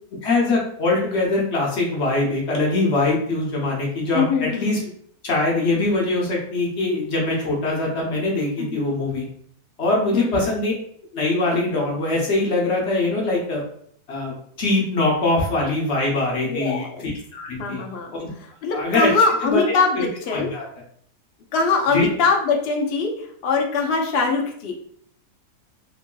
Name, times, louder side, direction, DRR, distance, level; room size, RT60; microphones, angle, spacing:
voice 1, 0.2-4.8 5.2-9.3 9.8-10.7 11.1-13.6 14.1-17.8 18.2-18.3 18.7-19.1 19.4-19.6 20.0-20.6 21.9-22.1, left 2 dB, 55° left, -2 dB, 0.9 m, -22 dB
voice 2, 4.1-4.9 8.6-8.8 10.1-10.4 16.5-17.0 17.6-18.1 18.6-20.5 21.5-24.7, left 4 dB, 80° left, 1 dB, 0.5 m, -22 dB
3.0 x 2.7 x 2.2 m, 0.63 s
omnidirectional pair, 1.7 m